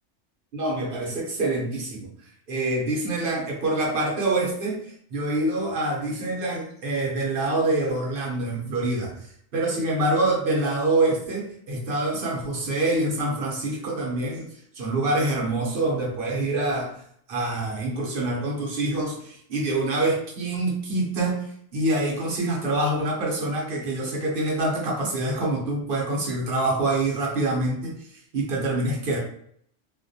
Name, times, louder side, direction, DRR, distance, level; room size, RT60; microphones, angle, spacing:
voice 1, 0.5-2.1 2.5-9.2 9.5-14.5 14.7-17.0 17.3-28.1 28.3-29.2, right 2 dB, 55° right, -2 dB, 0.8 m, -26 dB
2.3 x 2.2 x 2.6 m, 0.66 s
omnidirectional pair, 1.2 m